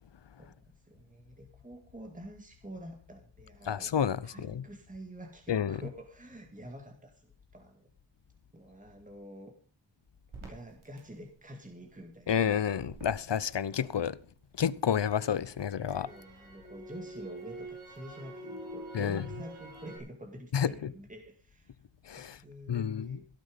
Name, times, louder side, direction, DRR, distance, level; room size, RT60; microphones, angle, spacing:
voice 1, 0.4-3.9 4.2-7.9 8.5-9.6 10.4-12.4 16.0-21.8 22.1-23.3, right 1 dB, 15° right, 2.1 m, -48 dB
voice 2, 3.6-4.6 5.5-5.8 12.3-14.2 14.6-16.1 18.9-19.2 20.5-20.9 22.0-22.4 22.7-23.2, left 8 dB, 65° left, 0.9 m, -30 dB
Crackle, 10.3-14.4 14.8-20.0, right 2 dB, 85° right, 5.6 m, -47 dB
17.0 x 8.8 x 5.2 m
wide cardioid pair, 65°, 47 cm